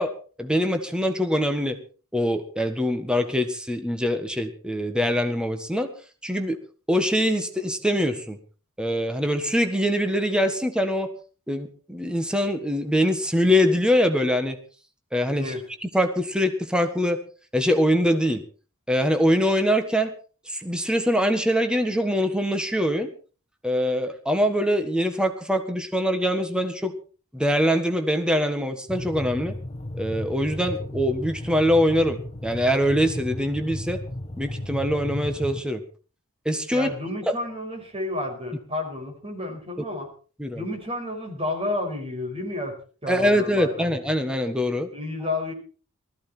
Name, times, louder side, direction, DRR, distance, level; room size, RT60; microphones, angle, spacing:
voice 1, 0.0-1.8 2.1-5.9 6.2-6.6 6.9-8.4 8.8-11.1 11.5-14.6 15.1-15.5 15.8-17.2 17.5-18.4 18.9-20.1 20.5-23.1 23.6-27.0 27.3-29.5 30.0-34.0 34.4-35.8 36.4-36.9 37.3-37.4 40.4-40.6 43.1-44.9, equal, 5° right, 7 dB, 1.5 m, -23 dB
sound 1, 28.9-35.6, left 1 dB, 30° left, 1.3 m, -34 dB
voice 2, 36.7-40.1 40.6-43.9 44.9-45.5, left 2 dB, 25° right, 2 dB, 5.5 m, -31 dB
19.5 x 14.5 x 4.5 m, 0.39 s
head